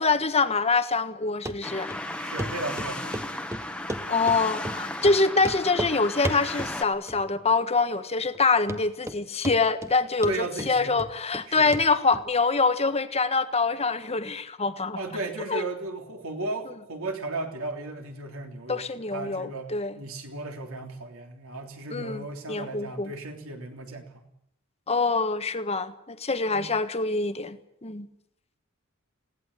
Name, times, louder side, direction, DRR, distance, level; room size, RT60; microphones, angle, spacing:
voice 1, 0.0-1.9 4.1-15.0 15.5-15.6 18.7-19.9 21.9-23.1 24.9-27.6 27.8-28.1, left 4 dB, 30° left, 10 dB, 1.4 m, -25 dB
Run, 1.5-1.6 1.9-2.0 2.4-2.5 2.8-3.3 3.5-4.4 4.6-4.8 5.0-5.2 5.4-5.9 6.2-6.7 7.1-7.5 7.8-7.9 8.3-8.4 8.7-9.2 9.4-9.9 10.2-11.5 11.7-11.8 12.1-12.2, right 1 dB, 15° right, 1.2 m, -33 dB
sound 1, 1.6-6.8, left 1 dB, 5° left, 1.4 m, -35 dB
voice 2, 2.2-3.2 10.2-11.0 11.5-11.7 15.0-24.3 26.5-26.7, right 2 dB, 70° right, 4 dB, 3.4 m, -35 dB
20.0 x 17.0 x 9.9 m, 0.79 s
head